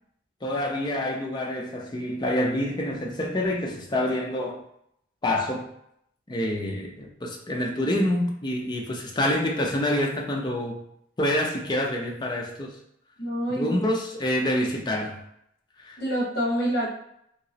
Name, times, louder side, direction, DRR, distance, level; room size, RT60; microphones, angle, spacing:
voice 1, 0.4-4.6 5.2-5.7 6.3-10.8 11.2-12.8 13.5-15.2 15.8-16.0, left 1 dB, 25° left, 0.4 m, -27 dB
voice 2, 13.2-13.9 16.0-16.9, equal, 55° left, 1.4 m, -26 dB
2.9 x 2.8 x 2.7 m
head